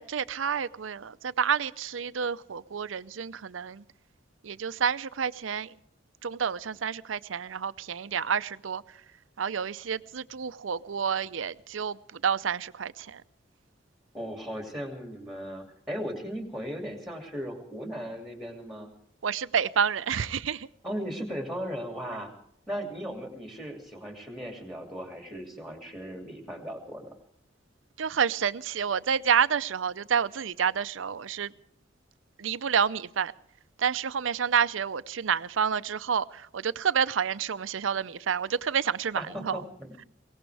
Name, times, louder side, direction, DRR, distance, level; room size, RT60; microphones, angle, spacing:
voice 1, 0.0-3.8 4.4-5.7 6.2-8.8 9.4-13.2 19.2-20.7 28.0-31.5 32.4-33.3 33.8-39.6, right 7 dB, 85° right, 0.6 m, -29 dB
voice 2, 14.1-18.9 20.8-22.3 22.7-27.1 39.1-39.9, equal, ahead, 2.5 m, -37 dB
21.5 x 18.5 x 3.4 m
head